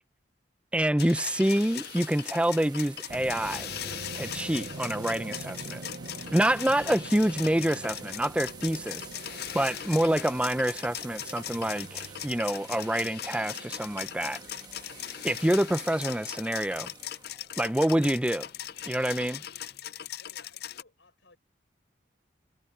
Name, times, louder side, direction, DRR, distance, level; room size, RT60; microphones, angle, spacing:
voice 1, 0.7-3.7 4.1-5.8 6.3-9.1 9.5-14.4 15.2-16.9 17.6-18.5 18.9-19.4, right 1 dB, 5° right, 0.5 m, -27 dB
sound 1, 1.0-20.8, left 11 dB, 55° left, 0.5 m, -39 dB
sound 2, 1.4-19.8, right 5 dB, 20° right, 1.3 m, -50 dB
sound 3, 3.1-17.5, right 3 dB, 60° right, 0.7 m, -46 dB
voice 2, 20.1-21.4, left 3 dB, 80° left, 5.7 m, -61 dB
head